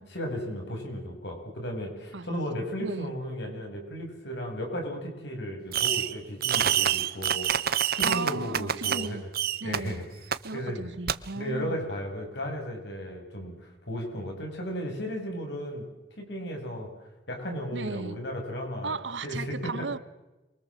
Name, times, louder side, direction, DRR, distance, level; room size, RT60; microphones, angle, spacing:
voice 1, 0.1-7.5 7.9-9.3 9.6-10.9 11.3-15.8 16.2-16.9 17.3-19.0 19.2-19.9, equal, 70° left, 8.0 m, -35 dB
voice 2, 2.8-3.1 8.0-9.2 9.6-10.0 10.4-11.8 17.7-18.2 18.8-20.0, right 3 dB, 90° right, 1.2 m, -35 dB
Fireworks, 5.7-6.1 6.4-9.1 9.3-9.8 10.3-10.4 11.1-11.2, right 9 dB, 60° right, 1.0 m, -26 dB
27.5 x 24.0 x 7.7 m
head